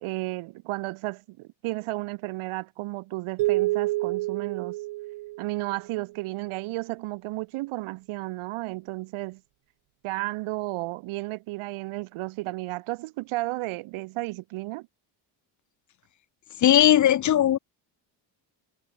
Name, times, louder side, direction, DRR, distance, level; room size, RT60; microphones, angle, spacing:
voice 1, 0.0-4.8 5.4-9.4 10.0-14.9, right 20 dB, 85° right, 1.7 m, -33 dB
sound 1, 3.4-6.0, right 19 dB, 70° right, 1.1 m, -28 dB
voice 2, 16.6-17.6, left 11 dB, 40° left, 0.7 m, -18 dB
cardioid pair, 145°, 48 cm